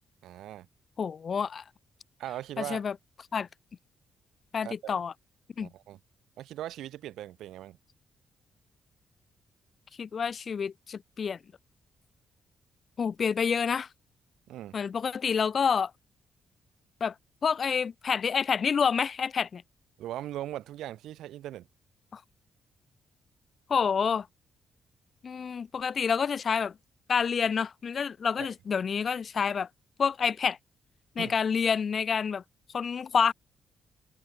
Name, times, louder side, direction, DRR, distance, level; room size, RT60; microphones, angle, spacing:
voice 1, 0.2-0.7 2.2-2.8 4.6-5.0 5.6-6.0 6.4-7.8 14.5-14.8 20.0-21.7 28.4-28.5 31.2-31.3, right 13 dB, 85° right, 6.5 m, -39 dB
voice 2, 1.0-1.6 2.6-2.9 3.3-3.5 4.5-5.1 5.6-5.7 10.0-11.4 13.0-13.9 14.7-15.9 17.0-17.1 17.4-19.6 22.1-22.2 23.7-24.3 25.2-26.7 27.1-29.7 30.0-30.6 31.2-32.4 32.7-33.3, left 6 dB, 55° left, 0.5 m, -28 dB
open air
cardioid pair, 70°, 0 cm